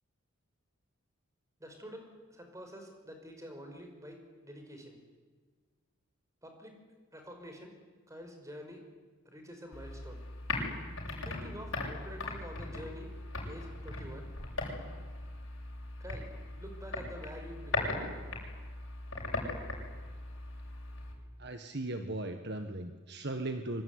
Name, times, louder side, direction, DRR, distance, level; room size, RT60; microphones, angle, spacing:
voice 1, 1.6-5.0 6.4-6.8 7.1-7.7 8.1-8.8 9.2-10.2 11.2-13.1 13.4-14.3 16.0-16.3 16.6-17.9, equal, 15° right, 4 dB, 5.3 m, -47 dB
sound 1, 9.7-21.1, left 2 dB, 60° left, 7.7 m, -39 dB
voice 2, 21.4-23.8, right 2 dB, 50° right, 7 dB, 1.5 m, -37 dB
25.5 x 24.0 x 9.7 m, 1.4 s
head